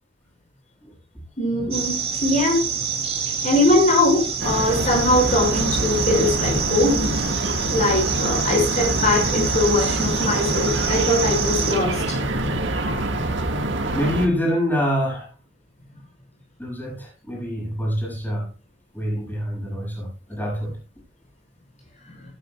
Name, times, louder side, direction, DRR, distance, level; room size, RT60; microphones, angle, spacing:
voice 1, 1.4-2.6 3.4-7.1 7.7-12.6, left 2 dB, 40° left, 0 dB, 6.0 m, -21 dB
sound 1, 1.7-11.7, right 6 dB, 35° right, 2.7 m, -27 dB
sound 2, 4.4-14.3, right 1 dB, 90° right, 1.7 m, -25 dB
voice 2, 13.9-15.3 16.6-18.5 18.9-20.7, equal, 10° left, -3 dB, 7.3 m, -25 dB
18.5 x 12.0 x 2.4 m, 0.32 s
head